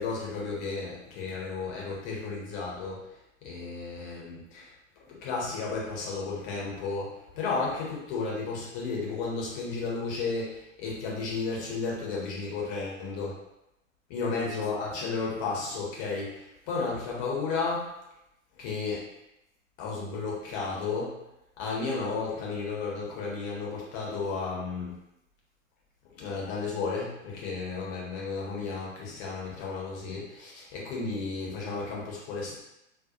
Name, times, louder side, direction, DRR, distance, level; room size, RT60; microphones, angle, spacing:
voice 1, 0.0-4.7 5.1-13.4 14.1-17.9 18.6-19.0 19.8-21.2 21.6-24.9 26.1-32.6, left 4 dB, 25° left, -4 dB, 0.7 m, -33 dB
2.5 x 2.1 x 2.7 m, 0.87 s
figure-of-eight pair, 105°, 40 cm